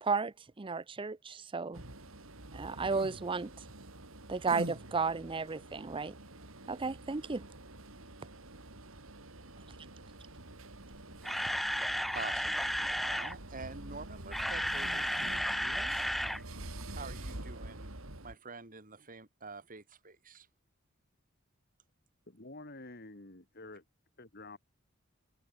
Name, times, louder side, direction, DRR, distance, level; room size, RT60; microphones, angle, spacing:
voice 1, 0.0-1.8 2.5-3.5 4.3-6.1 6.7-7.4, right 4 dB, 25° right, 0.5 m, -33 dB
sound 1, 1.7-18.3, right 1 dB, 85° right, 4.1 m, -47 dB
Camera, 10.9-13.3 14.1-16.4 16.7-16.8 17.3-17.4, equal, ahead, 0.9 m, -33 dB
voice 2, 12.1-16.0 16.9-17.9 18.2-20.5, right 3 dB, 40° right, 3.0 m, -47 dB
voice 3, 22.3-23.8 24.2-24.6, left 2 dB, 50° left, 3.1 m, -49 dB
head